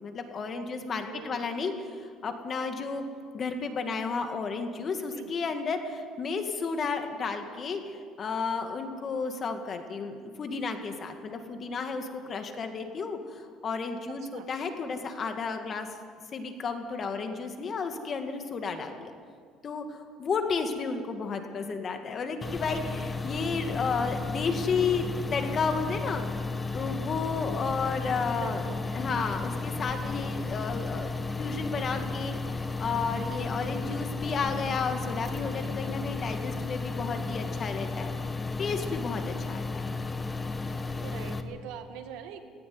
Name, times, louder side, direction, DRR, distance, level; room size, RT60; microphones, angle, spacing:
voice 1, 0.0-3.1 3.3-15.9 16.3-19.1 19.6-26.2 26.7-28.7 28.9-38.1 38.6-39.9, left 5 dB, 35° left, 6 dB, 2.1 m, -32 dB
voice 2, 1.1-1.4 5.1-5.3 14.1-14.5 28.4-28.8 41.0-42.5, right 9 dB, 90° right, 6 dB, 2.0 m, -43 dB
sound 1, 22.4-41.4, left 3 dB, 15° left, 1.2 m, -33 dB
17.0 x 16.5 x 9.6 m, 2.1 s
cardioid pair, 135°, 0 cm